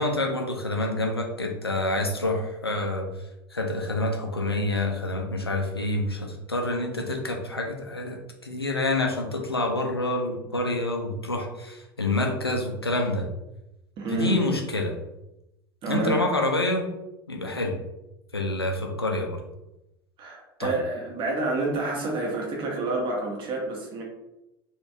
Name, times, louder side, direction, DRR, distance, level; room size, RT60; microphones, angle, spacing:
voice 1, 0.0-3.1 3.5-13.3 14.1-14.9 15.9-16.9 17.3-17.7 18.3-19.4 20.6-20.8, left 2 dB, 90° left, 2 dB, 0.5 m, -27 dB
voice 2, 14.0-14.4 15.8-16.2 20.2-24.0, right 2 dB, 40° right, -1 dB, 1.1 m, -28 dB
3.2 x 3.1 x 2.7 m, 0.92 s
figure-of-eight pair, 75°, 13 cm